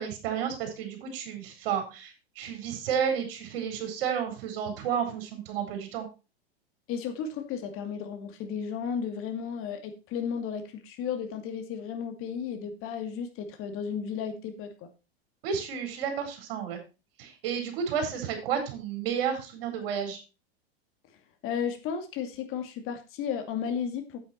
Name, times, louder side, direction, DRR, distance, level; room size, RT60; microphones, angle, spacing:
voice 1, 0.0-6.1 15.4-16.8 17.2-20.2, right 7 dB, 60° right, 5 dB, 4.3 m, -31 dB
voice 2, 6.9-14.9 21.4-24.2, left 7 dB, 45° left, 7 dB, 2.4 m, -34 dB
8.8 x 8.7 x 4.2 m, 0.30 s
hypercardioid pair, 100°, 31 cm